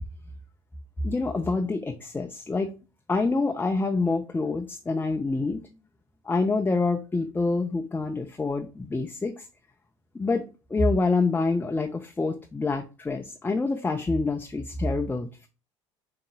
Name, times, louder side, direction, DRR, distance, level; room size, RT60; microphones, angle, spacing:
voice 1, 1.0-2.7 3.1-5.6 6.2-9.5 10.1-10.4 10.7-15.5, left 3 dB, 10° left, 0.5 m, -26 dB
5.1 x 3.7 x 2.3 m
figure-of-eight pair, 60°, 16 cm